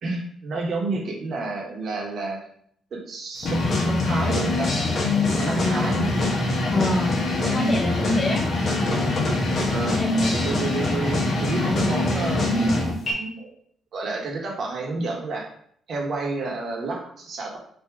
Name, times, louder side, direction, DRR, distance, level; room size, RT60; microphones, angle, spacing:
voice 1, 0.0-2.4 2.9-4.7 5.3-6.4 9.7-13.5 13.9-15.5 15.9-17.6, right 3 dB, 60° right, -1 dB, 1.3 m, -30 dB
sound 1, 3.4-13.1, left 2 dB, 50° left, 1.1 m, -23 dB
voice 2, 5.5-6.1 6.7-7.2 7.4-8.5 10.0-10.1, left 2 dB, 20° left, 1 dB, 0.7 m, -26 dB
3.6 x 2.6 x 4.6 m, 0.63 s
cardioid pair, 90°, 0 cm